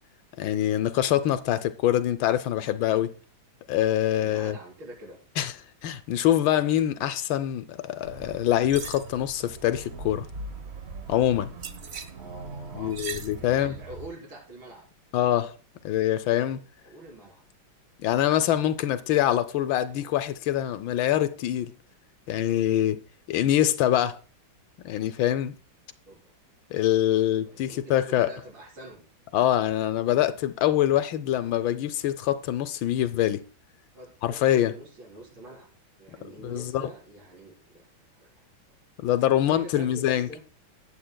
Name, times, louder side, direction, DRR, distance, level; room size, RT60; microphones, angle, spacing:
voice 1, 0.4-3.1 3.7-4.6 5.4-5.6 5.8-10.3 11.1-11.5 12.7-13.8 15.1-15.6 15.8-16.6 18.0-21.7 22.3-23.0 23.3-24.2 24.8-25.6 26.7-28.3 29.3-33.4 34.2-34.8 36.4-36.9 39.0-40.4, left 12 dB, 75° left, 1.3 m, -24 dB
voice 2, 4.2-5.2 12.2-12.9 13.3-14.8 16.8-17.4 26.1-26.3 27.5-29.0 33.9-35.7 36.0-38.8 39.4-40.4, right 1 dB, 75° right, 4.8 m, -45 dB
sound 1, 8.0-14.1, right 4 dB, 55° right, 0.7 m, -40 dB
19.0 x 7.7 x 2.2 m
omnidirectional pair, 2.2 m